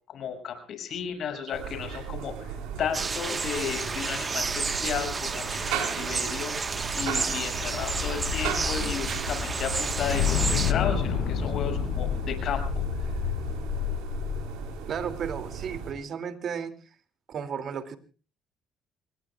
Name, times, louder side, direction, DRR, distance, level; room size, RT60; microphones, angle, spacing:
voice 1, 0.1-2.5 2.8-12.6, left 7 dB, 60° left, 6 dB, 6.6 m, -34 dB
sound 1, 1.5-15.9, right 7 dB, 85° right, 4.5 m, -36 dB
sound 2, 2.9-10.7, right 4 dB, 30° right, 1.4 m, -31 dB
sound 3, 6.7-14.8, left 8 dB, 80° left, 4.8 m, -30 dB
voice 2, 14.9-16.7 17.3-18.0, right 7 dB, 50° right, 10 dB, 2.6 m, -33 dB
28.0 x 21.5 x 2.4 m, 0.38 s
cardioid pair, 100°, 0 cm